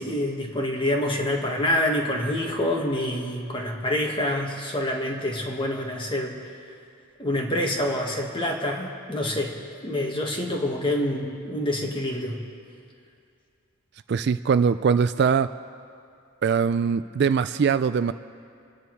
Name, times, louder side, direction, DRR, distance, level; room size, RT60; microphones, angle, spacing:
voice 1, 0.0-6.3 7.2-9.5 9.8-12.4, left 1 dB, 25° left, 0 dB, 1.8 m, -26 dB
voice 2, 14.1-15.5 16.4-18.1, right 6 dB, 50° right, 13 dB, 0.3 m, -22 dB
28.0 x 9.9 x 4.7 m, 2.4 s
head